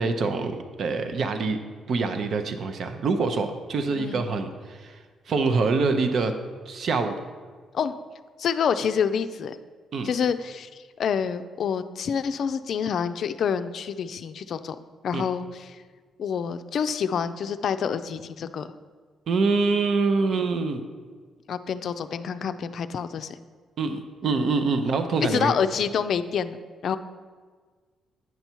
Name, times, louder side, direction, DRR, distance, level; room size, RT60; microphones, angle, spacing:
voice 1, 0.0-1.6 1.9-5.0 5.3-6.3 6.7-7.2 9.9-10.1 15.1-15.3 19.3-20.8 23.8-25.5, right 4 dB, 60° right, 7 dB, 0.7 m, -25 dB
voice 2, 3.9-4.3 7.7-7.9 8.4-9.6 10.0-14.8 15.0-15.8 16.2-18.7 20.3-20.4 21.5-23.3 25.2-26.6 26.8-27.0, left 7 dB, 60° left, 11 dB, 0.4 m, -27 dB
9.4 x 5.5 x 4.5 m, 1.5 s
cardioid pair, 90°, 0 cm